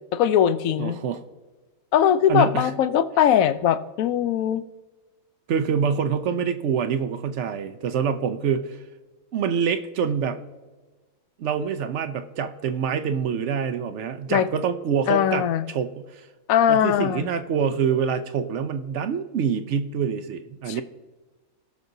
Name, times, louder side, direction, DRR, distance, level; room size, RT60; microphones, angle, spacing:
voice 1, 0.1-1.0 1.9-4.6 14.3-14.5 15.1-15.6 16.5-17.3 20.7-20.8, left 9 dB, 80° left, 13 dB, 1.0 m, -20 dB
voice 2, 0.8-1.2 2.3-2.7 5.5-8.8 9.3-10.4 11.4-16.3 16.7-20.8, right 7 dB, 65° right, 9 dB, 0.9 m, -26 dB
18.0 x 6.2 x 2.7 m, 1.2 s
omnidirectional pair, 1.4 m